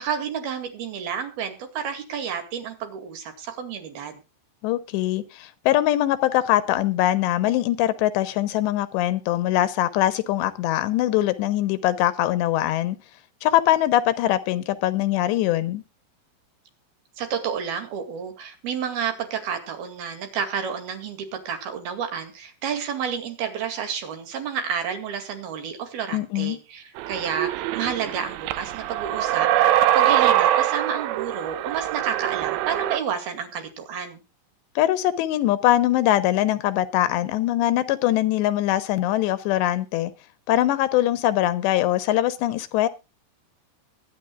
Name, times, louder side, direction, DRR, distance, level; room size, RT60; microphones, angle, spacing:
voice 1, 0.0-4.2 17.2-34.2, right 7 dB, 65° right, 4.0 m, -30 dB
voice 2, 4.6-13.0 13.4-15.8 26.1-26.6 34.8-40.1 40.5-42.9, left 14 dB, 85° left, 3.2 m, -22 dB
sound 1, 27.0-33.0, right 12 dB, 90° right, 3.0 m, -23 dB
22.5 x 10.0 x 2.4 m
omnidirectional pair, 5.0 m